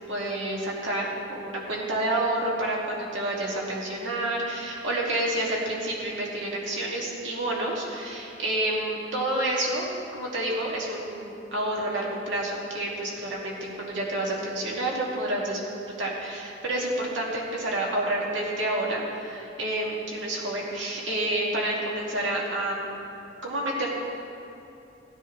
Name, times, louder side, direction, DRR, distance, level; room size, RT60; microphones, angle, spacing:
voice 1, 0.1-15.6 16.0-23.0 23.4-23.9, right 1 dB, 70° right, -3 dB, 2.3 m, -29 dB
17.5 x 9.9 x 3.2 m, 2.8 s
head